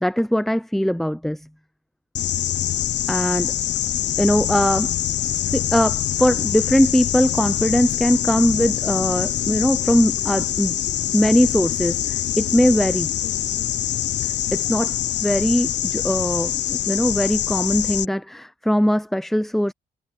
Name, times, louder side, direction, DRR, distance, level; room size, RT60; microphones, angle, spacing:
voice 1, 0.0-1.5 3.1-3.5 4.2-4.9 5.5-10.7 11.1-13.1 14.2-19.7, equal, ahead, 0.6 m, -21 dB
sound 1, 2.1-18.0, left 12 dB, 75° left, 0.8 m, -24 dB
supercardioid pair, 50°, 18 cm